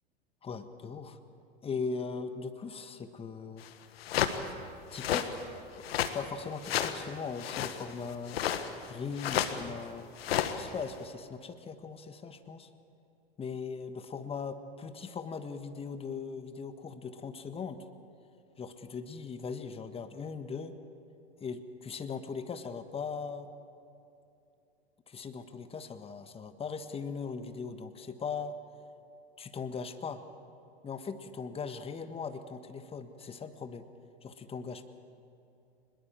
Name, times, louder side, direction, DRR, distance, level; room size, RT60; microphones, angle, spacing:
voice 1, 0.4-1.2 1.6-3.7 4.9-5.3 6.1-8.4 8.9-10.1 10.5-12.7 13.4-17.8 18.6-20.8 21.4-23.5 25.1-28.6 29.4-30.2 30.8-33.9 34.2-34.8, left 5 dB, 20° left, 10 dB, 1.4 m, -39 dB
sound 1, 3.6-3.7 4.0-4.4 4.9-5.3 5.8-6.2 6.6-7.0 7.4-7.8 8.3-8.9 9.2-9.7 10.2-10.8, left 10 dB, 65° left, 1.6 m, -31 dB
24.0 x 21.5 x 7.4 m, 2.7 s
hypercardioid pair, 95°, 32 cm